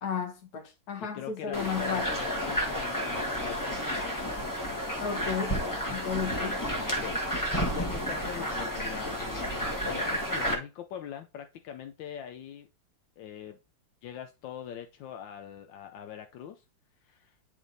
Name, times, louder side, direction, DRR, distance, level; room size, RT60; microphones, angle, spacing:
voice 1, 0.0-2.1 5.0-5.6 5.9-6.6, left 6 dB, 60° left, 1.7 m, -33 dB
voice 2, 1.0-4.0 6.8-7.3 7.7-12.7 13.2-13.6 14.0-16.6 17.0-17.4, left 9 dB, 80° left, 1.4 m, -42 dB
sound 1, 1.5-10.5, equal, 10° left, 1.2 m, -31 dB
10.0 x 3.5 x 3.9 m
omnidirectional pair, 2.0 m